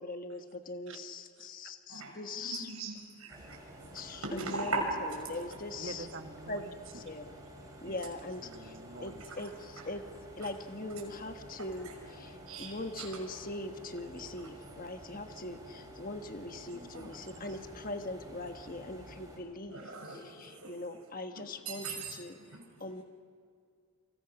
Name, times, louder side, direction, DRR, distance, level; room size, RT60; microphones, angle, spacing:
voice 1, 0.0-2.7 3.9-4.8 5.3-6.1 6.5-6.6 6.9-7.3 7.8-10.0 10.4-19.8 20.1-22.4 22.8-23.0, left 2 dB, 40° left, 6 dB, 1.3 m, -41 dB
voice 2, 1.4-1.7 5.8-7.0 7.9-8.0 8.4-9.2, right 2 dB, 55° right, 6 dB, 1.6 m, -47 dB
voice 3, 1.9-3.6 4.2-4.8 11.8-12.0 12.5-13.1 16.6-17.5 19.7-20.7 21.3-22.8, right 3 dB, 85° right, 1 dB, 6.0 m, -40 dB
sound 1, 3.3-19.4, equal, 15° right, 5.2 m, -50 dB
28.0 x 27.5 x 6.0 m, 2.3 s
head